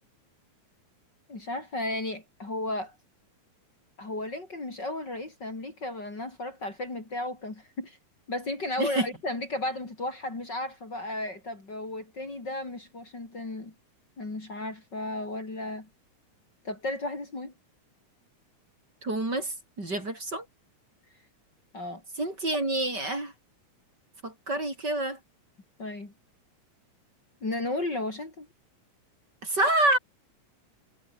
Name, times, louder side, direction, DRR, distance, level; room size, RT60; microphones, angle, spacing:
voice 1, 1.3-2.9 4.0-8.0 8.3-13.7 14.2-15.9 16.6-17.5 21.7-22.0 25.8-26.1 27.4-28.5, left 2 dB, 35° left, 5.1 m, -34 dB
voice 2, 19.0-20.4 22.2-23.3 24.2-25.2 29.4-30.0, right 2 dB, 30° right, 6.7 m, -27 dB
omnidirectional pair, 3.4 m